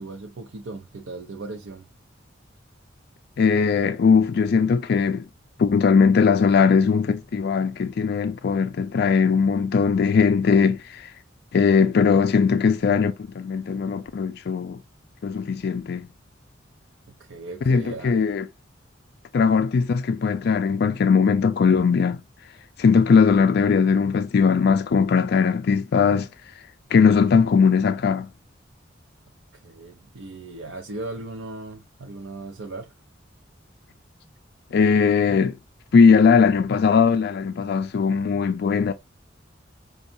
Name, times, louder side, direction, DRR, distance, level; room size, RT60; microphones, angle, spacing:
voice 1, 0.0-1.9 17.1-18.2 29.5-32.9, right 2 dB, 85° right, 0.6 m, -37 dB
voice 2, 3.4-5.2 5.6-11.1 11.5-14.8 15.2-16.1 17.7-18.5 19.3-22.2 22.8-26.3 26.9-28.3 34.7-35.6 35.9-38.9, left 5 dB, 55° left, 0.4 m, -19 dB
5.2 x 2.3 x 2.7 m
head